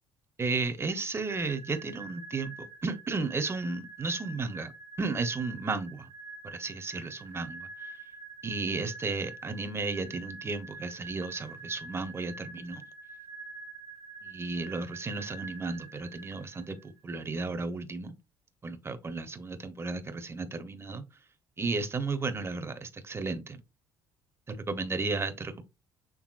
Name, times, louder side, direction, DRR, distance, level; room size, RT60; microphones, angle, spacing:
voice 1, 0.4-4.7 5.0-6.0 6.4-7.7 8.4-12.8 14.2-18.1 18.6-21.0 21.6-23.6 24.5-25.6, right 3 dB, 25° right, 1.0 m, -34 dB
sound 1, 1.3-16.9, right 3 dB, 70° right, 1.7 m, -46 dB
6.3 x 3.4 x 2.5 m
hypercardioid pair, 65°, 10 cm